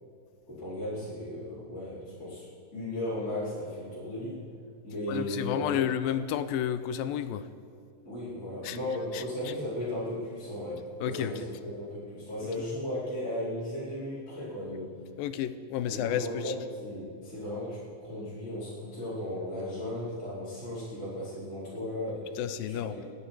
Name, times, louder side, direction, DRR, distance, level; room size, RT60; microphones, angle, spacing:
voice 1, 0.5-2.5 2.7-4.4 4.8-5.8 8.1-14.9 15.9-22.8, left 1 dB, 20° left, -11 dB, 5.1 m, -36 dB
voice 2, 5.1-7.4 8.6-8.8 9.1-9.2 11.0-11.3 15.2-16.5 22.4-23.0, left 10 dB, 90° left, 11 dB, 2.4 m, -31 dB
29.0 x 10.0 x 4.9 m, 2.3 s
omnidirectional pair, 4.1 m